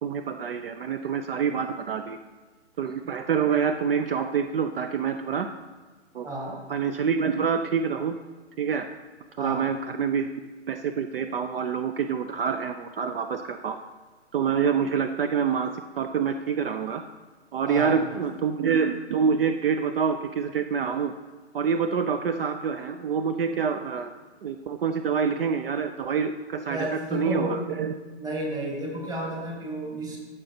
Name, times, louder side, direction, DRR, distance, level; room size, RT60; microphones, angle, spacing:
voice 1, 0.0-2.2 2.8-5.5 6.1-6.3 6.7-8.2 8.6-8.9 9.4-10.3 10.7-13.8 14.3-17.0 17.5-21.1 21.5-24.1 24.4-27.9, right 6 dB, 55° right, 8 dB, 0.5 m, -26 dB
voice 2, 6.2-6.6 9.4-9.7 17.7-18.3 26.7-27.6 28.2-30.2, equal, 10° right, -1 dB, 1.4 m, -32 dB
13.0 x 6.6 x 2.8 m, 1.3 s
hypercardioid pair, 140°, 35 cm